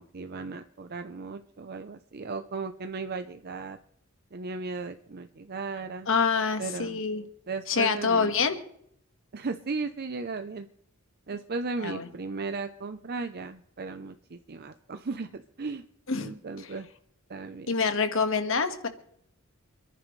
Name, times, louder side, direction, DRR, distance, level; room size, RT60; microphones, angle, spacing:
voice 1, 0.0-3.8 4.3-6.1 6.6-7.0 7.5-8.3 9.3-10.7 11.3-15.8 16.2-16.9 17.3-17.8, right 4 dB, 50° right, 8 dB, 0.7 m, -36 dB
voice 2, 6.1-7.2 7.7-8.6 11.8-12.1 16.1-16.3 17.7-18.9, left 5 dB, 65° left, 8 dB, 1.7 m, -26 dB
28.5 x 11.0 x 3.2 m, 0.71 s
head